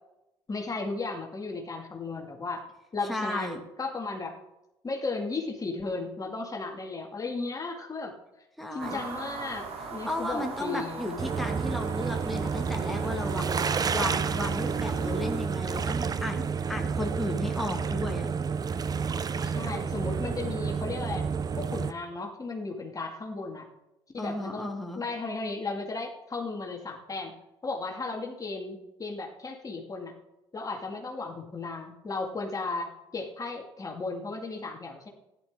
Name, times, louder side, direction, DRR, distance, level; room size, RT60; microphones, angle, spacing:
voice 1, 0.5-2.6 2.9-3.5 3.8-4.4 4.8-8.1 8.7-11.2 19.4-21.3 21.6-23.7 24.1-24.7 25.0-27.3 27.6-30.1 30.5-35.1, left 3 dB, 25° left, 1 dB, 2.2 m, -35 dB
voice 2, 3.1-3.6 8.6-9.0 10.1-13.6 13.9-18.3 24.2-25.0, left 1 dB, ahead, 1 dB, 2.0 m, -34 dB
sound 1, 8.8-15.5, right 4 dB, 50° right, 2.3 m, -39 dB
sound 2, 11.2-21.9, right 6 dB, 30° right, 0.7 m, -30 dB
15.5 x 11.0 x 3.7 m, 0.93 s
figure-of-eight pair, 60°, 14 cm